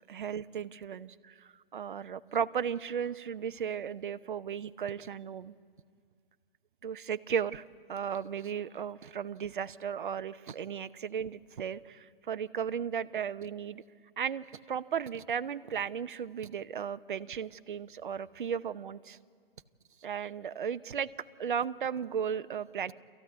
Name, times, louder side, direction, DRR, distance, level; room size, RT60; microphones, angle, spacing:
voice 1, 0.1-1.1 1.7-5.5 6.8-7.6 7.9-13.8 14.2-19.2 20.0-21.1 21.4-22.9, right 7 dB, 60° right, 13 dB, 0.9 m, -35 dB
28.0 x 15.0 x 9.5 m, 2.2 s
figure-of-eight pair, 130°, 29 cm